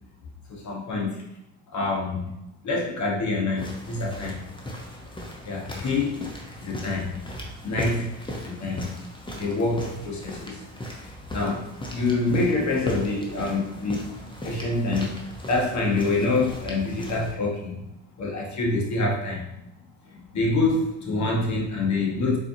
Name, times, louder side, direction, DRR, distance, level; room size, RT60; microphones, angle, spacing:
voice 1, 0.5-1.2 1.7-2.3 2.6-4.4 5.4-7.2 7.6-8.9 9.3-10.6 11.0-14.1 14.4-17.8 18.2-19.5 20.1-22.4, left 3 dB, 45° left, -1 dB, 1.2 m, -26 dB
sound 1, 3.6-17.3, equal, 10° left, 0.8 m, -37 dB
4.0 x 2.8 x 2.8 m, 0.84 s
hypercardioid pair, 65°, 39 cm